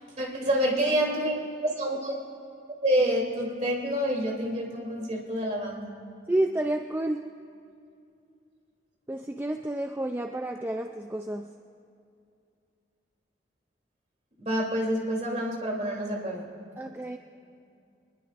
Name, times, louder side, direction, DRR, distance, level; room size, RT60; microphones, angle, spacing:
voice 1, 0.2-2.2 2.8-5.9 14.4-16.5, equal, 35° right, -1 dB, 3.0 m, -28 dB
voice 2, 6.3-7.3 9.1-11.5 16.8-17.2, right 1 dB, 10° right, 5 dB, 0.4 m, -30 dB
24.0 x 21.0 x 2.5 m, 2.5 s
head